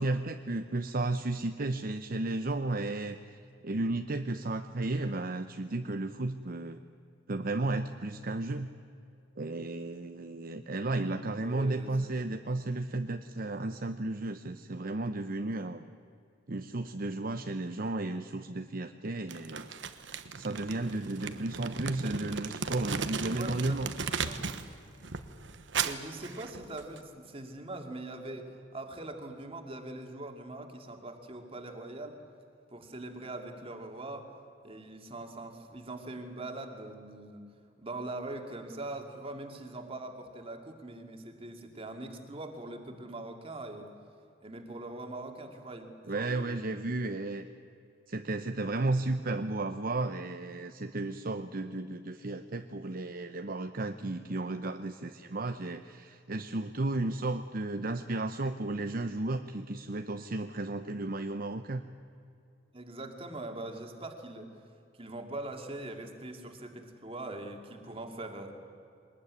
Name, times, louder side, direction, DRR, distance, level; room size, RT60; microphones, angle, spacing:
voice 1, 0.0-3.4 3.6-6.8 7.3-8.7 9.4-15.9 16.5-19.7 20.3-23.9 46.1-47.5 48.1-61.8, right 2 dB, 50° right, 8 dB, 0.8 m, -33 dB
voice 2, 11.0-12.0 22.0-22.1 23.4-23.8 24.1-24.4 25.8-32.2 32.7-34.3 34.6-37.5 37.8-43.9 44.4-46.8 62.7-64.5 65.0-68.5, right 2 dB, 30° right, 4 dB, 2.5 m, -42 dB
Crumpling crinkling, 19.3-24.7 25.0-27.0, right 5 dB, 75° right, 1.2 m, -36 dB
22.5 x 20.0 x 9.7 m, 2.5 s
head